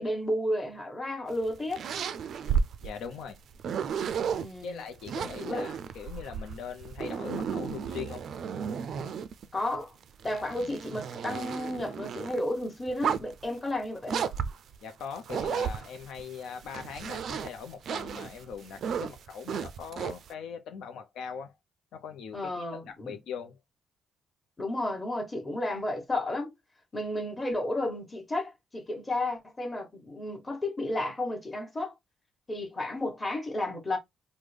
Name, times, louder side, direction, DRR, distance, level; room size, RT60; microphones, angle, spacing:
voice 1, 0.0-1.8 4.4-4.8 5.4-5.7 9.5-9.9 10.2-14.3 22.3-23.2 24.6-26.5 26.9-31.9 32.5-34.0, left 1 dB, 20° left, 1.2 m, -32 dB
sound 1, 1.3-4.5 5.0-9.4 10.0-12.4 12.9-13.4 14.1-16.2 16.6-20.3, right 7 dB, 65° right, 0.3 m, -33 dB
voice 2, 2.8-3.4 4.6-8.3 14.8-21.5 21.9-23.6, left 6 dB, 80° left, 0.5 m, -41 dB
3.6 x 2.1 x 3.2 m
cardioid pair, 90°, 0 cm